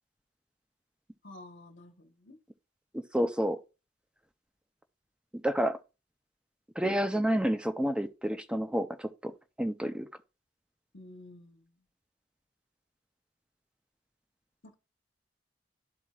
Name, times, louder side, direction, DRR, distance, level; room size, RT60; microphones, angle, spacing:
voice 1, 1.2-2.4 10.9-11.7 14.6-14.7, left 1 dB, 90° left, 1.2 m, -50 dB
voice 2, 2.9-3.6 5.4-5.8 6.8-9.3 9.6-10.1, equal, 5° right, 0.6 m, -29 dB
12.5 x 4.2 x 2.4 m
head